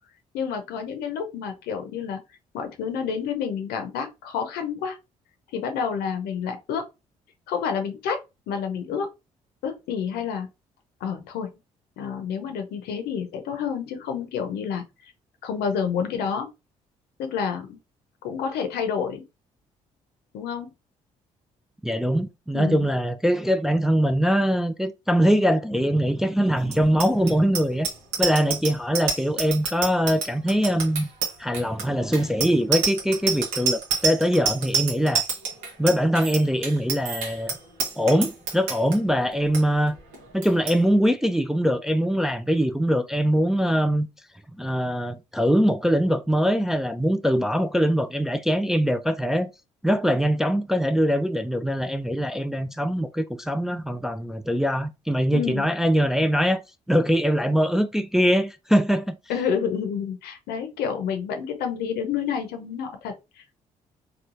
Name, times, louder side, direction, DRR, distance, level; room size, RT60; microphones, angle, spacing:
voice 1, 0.3-2.2 2.5-5.0 5.5-6.9 7.5-8.2 8.5-9.1 9.6-10.5 11.0-11.5 12.0-14.9 15.4-16.5 17.2-17.8 18.2-19.2 20.3-20.7 22.5-22.9 55.3-55.7 59.3-63.6, left 7 dB, 70° left, 0.6 m, -29 dB
voice 2, 21.8-27.9 28.2-31.1 31.4-35.2 35.8-37.6 38.0-40.0 40.3-44.1 44.6-49.5 49.8-56.6 56.9-59.2, equal, 5° right, 0.3 m, -22 dB
Bicycle bell, 26.6-39.0 39.3-39.6 39.9-40.2 40.4-40.8, right 5 dB, 80° right, 0.9 m, -27 dB
3.0 x 2.3 x 2.5 m
hypercardioid pair, 50°, 17 cm